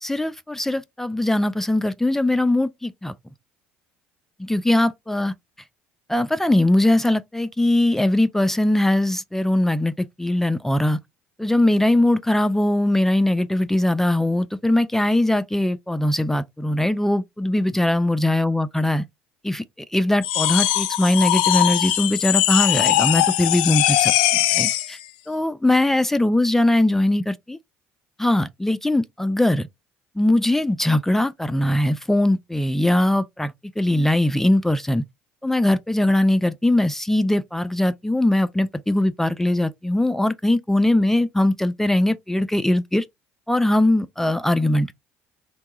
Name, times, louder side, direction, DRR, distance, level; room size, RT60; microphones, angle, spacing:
voice 1, 0.0-3.1 4.4-5.3 6.1-11.0 11.4-19.1 19.4-19.6 19.9-25.0 25.3-27.6 28.2-29.7 30.2-35.0 35.4-43.0 43.5-44.9, left 1 dB, 5° left, 0.3 m, -21 dB
sound 1, 20.2-24.9, left 14 dB, 85° left, 0.3 m, -20 dB
3.4 x 2.2 x 3.0 m
supercardioid pair, 75°, 5 cm